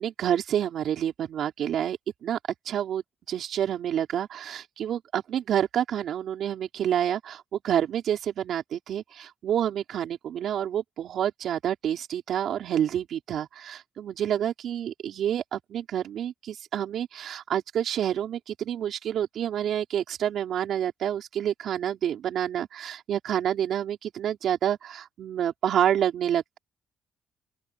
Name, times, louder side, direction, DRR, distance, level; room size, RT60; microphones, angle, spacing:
voice 1, 0.0-2.4 2.7-26.6, right 10 dB, 70° right, 3.9 m, -28 dB
open air
cardioid pair, 90°, 0 cm